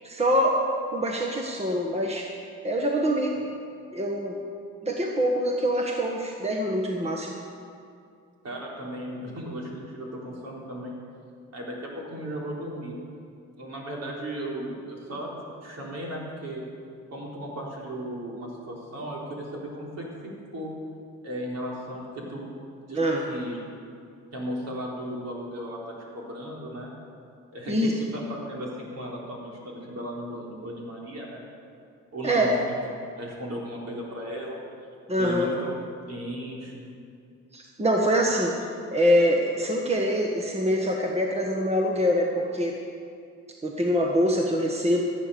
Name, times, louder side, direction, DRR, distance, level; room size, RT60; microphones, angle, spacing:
voice 1, 0.0-0.6 0.9-2.3 2.6-3.4 3.9-4.4 4.8-7.3 22.9-23.2 27.7-27.9 32.2-32.6 35.1-35.5 37.5-42.8 43.6-45.0, equal, 20° right, 0 dB, 1.5 m, -24 dB
voice 2, 8.4-11.0 11.5-13.0 13.6-15.3 15.6-16.6 17.1-20.1 20.5-20.7 21.2-22.5 22.9-23.0 23.3-23.6 24.3-26.9 27.5-31.4 32.1-32.8 33.2-34.6 35.2-35.7 36.1-36.8, equal, 55° right, -3 dB, 3.9 m, -36 dB
14.5 x 8.7 x 6.9 m, 2.4 s
cardioid pair, 90°, 30 cm